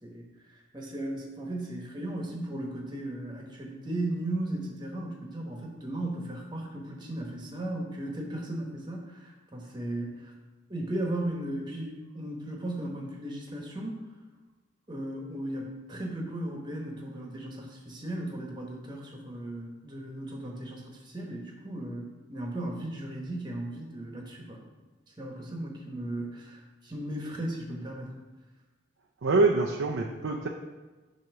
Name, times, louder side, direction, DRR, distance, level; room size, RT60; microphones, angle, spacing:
voice 1, 0.0-10.3 10.7-14.0 14.9-24.6 25.2-28.1, right 1 dB, 20° right, 0 dB, 1.1 m, -36 dB
voice 2, 29.2-30.5, right 3 dB, 85° right, 0 dB, 0.5 m, -25 dB
7.7 x 2.9 x 5.9 m, 1.3 s
head